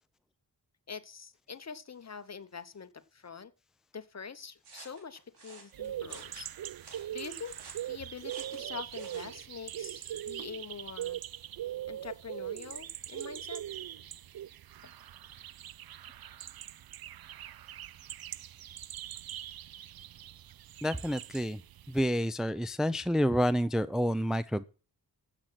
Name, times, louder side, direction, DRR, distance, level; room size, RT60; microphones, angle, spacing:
voice 1, 0.9-3.5 3.9-6.5 6.9-11.2 11.9-13.6 14.8-14.9, left 6 dB, 40° left, 1.1 m, -45 dB
sound 1, 4.6-9.4, right 4 dB, 85° right, 5.3 m, -53 dB
sound 2, 5.7-22.0, right 11 dB, 65° right, 0.6 m, -42 dB
voice 2, 20.8-21.6 21.9-24.6, equal, ahead, 0.5 m, -29 dB
14.0 x 8.0 x 5.8 m
wide cardioid pair, 95°, 39 cm